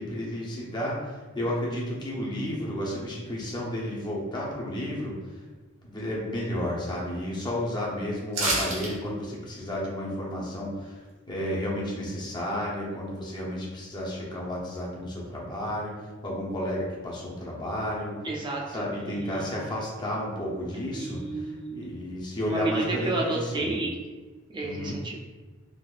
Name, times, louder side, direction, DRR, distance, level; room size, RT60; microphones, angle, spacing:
voice 1, 0.0-5.4 5.8-18.2 18.7-23.7 24.6-25.0, left 1 dB, 20° left, -4 dB, 0.7 m, -32 dB
sound 1, 8.3-8.9 9.3-9.4, right 2 dB, 75° right, 1.0 m, -27 dB
voice 2, 18.2-19.5 20.9-21.8 22.4-24.0 24.5-25.2, right 2 dB, 20° right, -3 dB, 0.5 m, -31 dB
3.4 x 2.6 x 2.4 m, 1.3 s
head